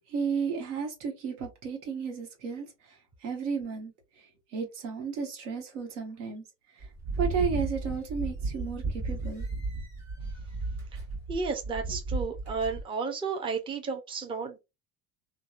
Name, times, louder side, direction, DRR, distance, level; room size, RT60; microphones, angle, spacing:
voice 1, 0.1-2.7 3.2-3.9 4.5-6.4 6.8-6.9 7.2-9.5, right 6 dB, 80° right, 1.0 m, -33 dB
sound 1, 6.8-12.8, right 3 dB, 45° right, 1.2 m, -34 dB
voice 2, 11.3-14.6, right 4 dB, 15° right, 0.5 m, -32 dB
2.7 x 2.2 x 2.4 m
supercardioid pair, 100°, 36 cm